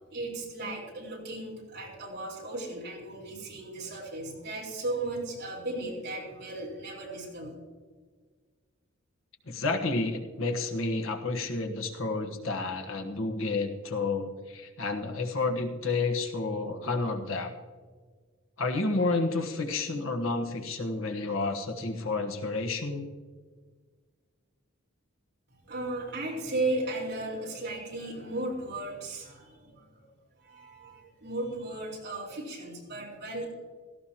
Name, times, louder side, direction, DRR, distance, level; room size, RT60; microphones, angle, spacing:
voice 1, 0.1-7.5 25.6-30.0 30.4-33.5, right 2 dB, 50° right, -3 dB, 4.2 m, -35 dB
voice 2, 9.5-17.5 18.6-23.1, left 3 dB, 70° left, 4 dB, 1.3 m, -30 dB
17.0 x 15.0 x 2.9 m, 1.5 s
head